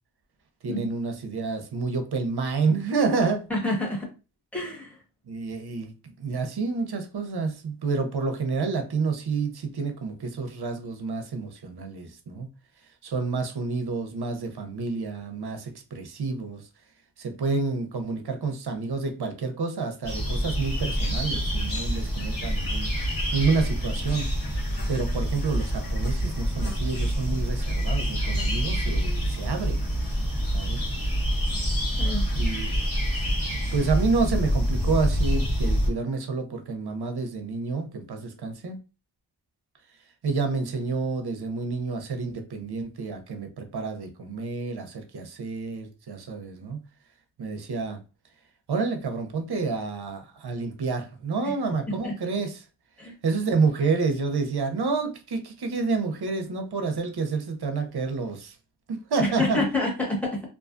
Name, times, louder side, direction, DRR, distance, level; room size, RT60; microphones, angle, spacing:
voice 1, 0.6-3.4 5.3-12.5 13.0-16.7 17.2-22.9 23.3-24.3 24.9-29.8 30.5-30.8 32.3-32.9 33.7-38.8 40.2-46.8 47.4-48.0 48.7-52.6 53.2-58.6 58.9-59.6, right 4 dB, 55° right, 0.7 m, -29 dB
voice 2, 3.5-4.1 4.5-5.0 32.0-32.2 51.4-51.5 52.0-52.1 53.0-53.1 59.2-60.4, left 2 dB, 5° left, 1.2 m, -28 dB
sound 1, 20.0-35.9, equal, 45° left, 1.1 m, -26 dB
2.5 x 2.3 x 2.4 m
wide cardioid pair, 50°, 46 cm